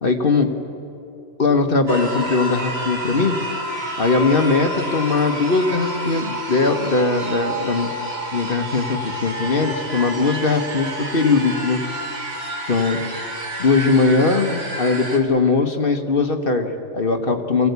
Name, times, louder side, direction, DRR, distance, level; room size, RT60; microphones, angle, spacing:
voice 1, 0.0-0.5 1.4-3.4 4.0-7.9 8.3-11.8 12.7-13.0 13.6-17.7, left 3 dB, 40° left, 5 dB, 1.3 m, -20 dB
sound 1, 1.9-15.2, right 1 dB, 45° right, 2.2 m, -29 dB
24.0 x 17.5 x 8.2 m, 2.8 s
omnidirectional pair, 1.5 m